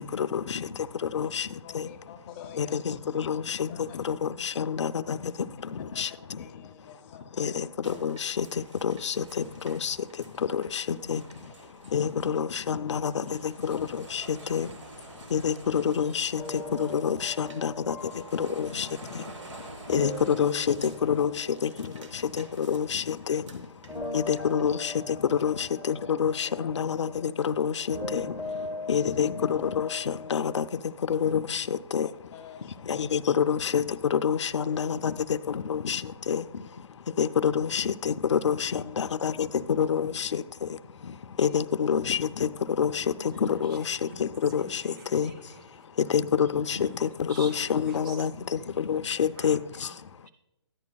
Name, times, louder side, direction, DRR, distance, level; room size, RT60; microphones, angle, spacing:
voice 1, 0.0-2.0 2.6-6.7 7.4-32.1 32.8-44.8 45.1-45.3 46.0-49.9, left 7 dB, 75° left, 9 dB, 0.5 m, -28 dB
voice 2, 1.6-2.8 3.7-4.0 5.9-7.6 7.9-8.0 9.3-9.4 9.8-9.9 10.5-10.6 10.9-11.1 12.0-12.1 13.7-13.8 14.3-14.5 15.3-15.5 16.3-16.5 19.6-20.1 20.9-21.2 22.1-22.7 24.0-24.3 26.6-26.7 30.2-30.5 32.3-32.8 34.7-34.8 41.5-41.6 45.7-46.2, left 8 dB, 25° left, 6 dB, 0.7 m, -49 dB
sound 1, 7.8-24.7, right 3 dB, 85° right, 1.4 m, -50 dB
sound 2, 16.4-23.6 23.9-30.6, left 2 dB, 5° right, 0.9 m, -41 dB
voice 3, 43.1-45.9 46.7-50.3, right 3 dB, 45° right, 2 dB, 3.1 m, -49 dB
14.0 x 10.5 x 2.3 m, 0.92 s
hypercardioid pair, 150°, 15 cm